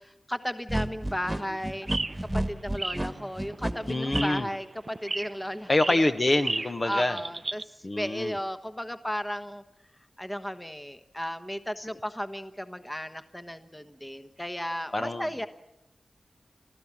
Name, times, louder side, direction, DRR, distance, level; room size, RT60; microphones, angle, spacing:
voice 1, 0.0-1.9 2.3-6.0 6.8-9.6 10.2-15.5, equal, 10° left, 10 dB, 1.2 m, -35 dB
sound 1, 0.7-4.2, right 1 dB, 15° right, 1.7 m, -30 dB
sound 2, 1.1-7.6, right 3 dB, 40° right, 0.7 m, -36 dB
voice 2, 3.9-4.5 5.7-7.2 7.8-8.4 11.8-11.9 14.9-15.3, left 2 dB, 45° left, 8 dB, 1.2 m, -26 dB
28.5 x 14.0 x 7.4 m, 0.94 s
wide cardioid pair, 60°, 0 cm